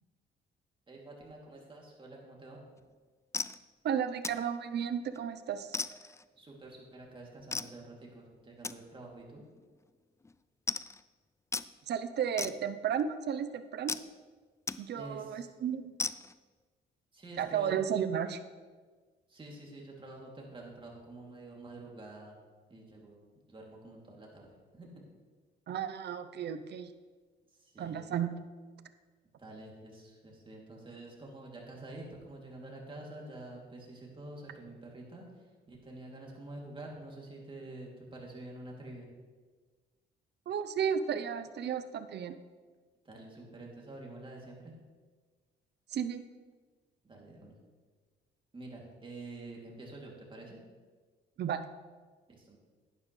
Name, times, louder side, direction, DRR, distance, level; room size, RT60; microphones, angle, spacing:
voice 1, 0.9-2.6 6.4-9.4 14.9-15.5 17.1-17.8 19.3-22.4 22.7-23.2 23.5-25.0 27.5-28.1 29.4-39.1 43.0-44.8 47.0-47.5 48.5-50.6 52.3-52.6, right 2 dB, 25° right, -2 dB, 2.7 m, -48 dB
sound 1, 2.8-2.9 3.3-3.6 4.2-4.5 4.9-5.2 5.7-6.2 7.5-7.8 8.6-8.8 9.5-9.6 9.9-10.0 10.2-10.4 10.7-11.0 11.5-11.7 12.4-13.0 13.9-14.1 14.7-14.8 15.2-15.3 16.0-16.4, left 3 dB, 15° left, 0.3 m, -36 dB
voice 2, 3.8-5.8 11.9-13.9 14.8-16.0 17.4-18.4 25.7-26.9 27.8-28.4 40.5-42.4 45.9-46.2 51.4-51.6, right 8 dB, 60° right, 11 dB, 0.7 m, -33 dB
11.5 x 9.7 x 3.2 m, 1.4 s
cardioid pair, 90°, 20 cm